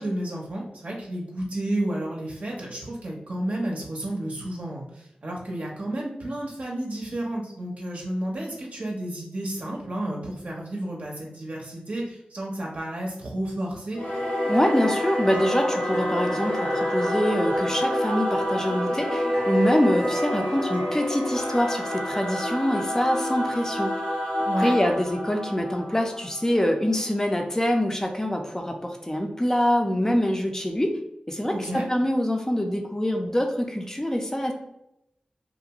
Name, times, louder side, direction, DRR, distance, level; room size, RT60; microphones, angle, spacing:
voice 1, 0.0-14.0 24.5-24.8 31.5-31.9, right 1 dB, 60° right, -2 dB, 0.6 m, -31 dB
Singing / Musical instrument, 13.9-26.8, equal, 80° left, 1.0 m, -27 dB
voice 2, 14.5-23.9 24.6-30.9 31.3-34.5, equal, 20° left, 3 dB, 0.5 m, -25 dB
2.5 x 2.2 x 2.8 m, 0.81 s
cardioid pair, 50°, 3 cm